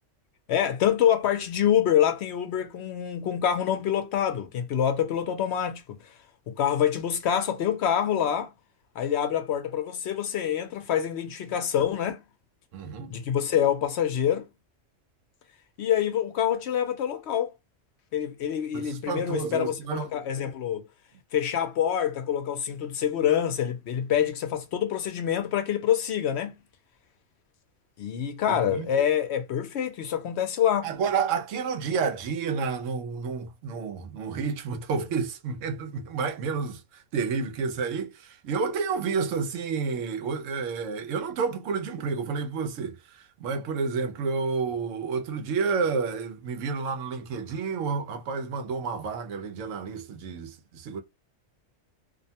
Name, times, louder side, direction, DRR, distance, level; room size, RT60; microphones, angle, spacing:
voice 1, 0.5-6.1 6.5-8.5 9.0-12.2 13.1-14.5 15.8-17.5 18.1-20.9 21.3-26.5 28.0-30.9, left 9 dB, 65° left, 0.8 m, -26 dB
voice 2, 12.7-13.1 18.7-20.1 28.5-28.9 30.8-51.0, right 5 dB, 80° right, 1.0 m, -30 dB
2.6 x 2.1 x 2.7 m
omnidirectional pair, 1.3 m